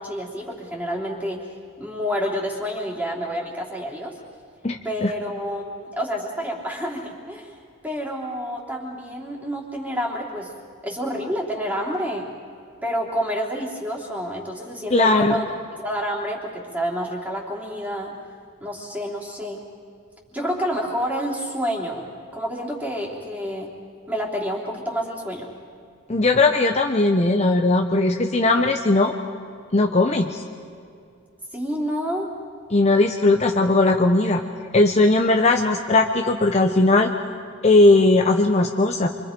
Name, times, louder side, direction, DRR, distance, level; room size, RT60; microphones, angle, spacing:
voice 1, 0.0-1.4 1.8-4.2 4.8-7.5 7.8-10.5 10.8-12.3 12.8-15.5 15.8-18.1 18.6-19.6 20.3-23.7 24.1-25.5 31.5-32.3, equal, 5° right, -3 dB, 3.3 m, -28 dB
voice 2, 4.6-5.1 14.9-15.3 26.1-29.1 29.7-30.4 32.7-34.4 34.7-37.1 37.6-39.1, left 2 dB, 30° left, 3 dB, 0.8 m, -18 dB
28.0 x 25.0 x 5.3 m, 2.4 s
head